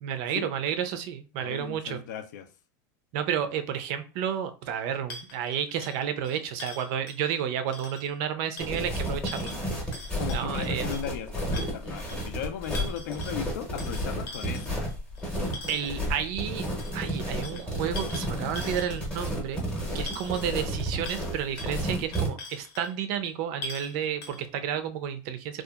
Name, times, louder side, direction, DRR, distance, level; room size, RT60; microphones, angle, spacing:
voice 1, 0.0-2.0 3.1-10.0 10.3-10.9 15.7-16.7 16.9-19.6 19.9-25.6, right 9 dB, 45° right, 0.4 m, -31 dB
voice 2, 1.4-2.5 10.2-14.8, left 8 dB, 80° left, 0.5 m, -37 dB
sound 1, 5.1-7.4 7.7-8.1 8.6-11.1 11.5-12.3 12.6-13.4 13.8-16.0 16.8-19.2 19.5-19.6 20.1-20.7 21.0-21.3 21.6-21.7 22.1-22.9 23.2-23.3 23.6-23.9 24.2-24.4, left 2 dB, 45° left, 0.7 m, -42 dB
sound 2, 8.6-22.3, equal, 10° left, 0.7 m, -32 dB
2.7 x 2.3 x 2.3 m
supercardioid pair, 155°, 10 cm